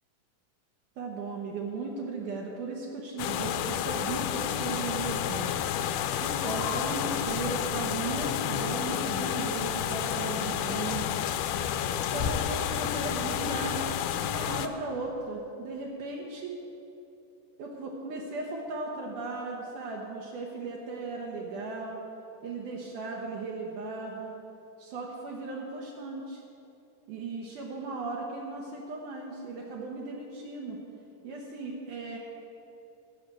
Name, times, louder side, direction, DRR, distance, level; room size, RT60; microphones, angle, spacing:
voice 1, 1.0-5.5 6.2-11.1 12.0-16.5 17.6-22.0 22.4-24.3 24.8-26.4 27.1-30.8 31.2-32.2, right 3 dB, 75° right, -2 dB, 2.5 m, -36 dB
sound 1, 3.2-14.7, left 9 dB, 80° left, 2.0 m, -30 dB
13.0 x 6.5 x 7.4 m, 2.8 s
omnidirectional pair, 3.7 m